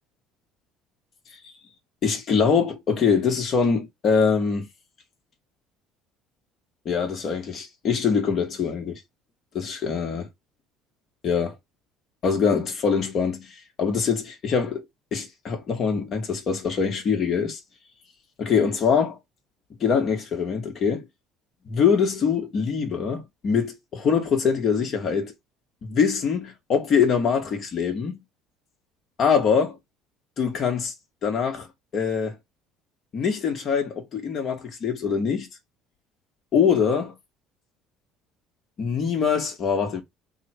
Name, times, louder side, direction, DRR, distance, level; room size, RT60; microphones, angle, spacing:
voice 1, 2.0-4.7 6.8-9.0 9.5-10.2 11.2-11.5 12.2-14.8 15.1-17.6 18.4-19.2 19.8-21.0 21.7-25.3 25.8-28.2 29.2-29.8 30.4-30.9 31.2-31.7 31.9-32.4 33.1-35.5 36.5-37.1 38.8-40.0, left 6 dB, 45° left, 1.4 m, -23 dB
3.5 x 2.2 x 4.3 m
cardioid pair, 110°, 0 cm